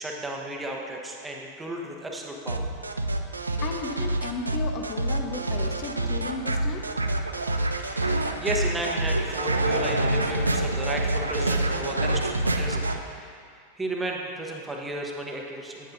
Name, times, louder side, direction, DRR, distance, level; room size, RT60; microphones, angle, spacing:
voice 1, 0.0-2.7 7.8-15.9, right 1 dB, 10° right, 0 dB, 0.9 m, -34 dB
sound 1, 2.5-13.0, right 2 dB, 80° right, 0.4 m, -27 dB
voice 2, 3.6-6.9, left 4 dB, 35° left, 3 dB, 0.6 m, -34 dB
9.3 x 8.9 x 2.6 m, 2.3 s
figure-of-eight pair, 90°, 0 cm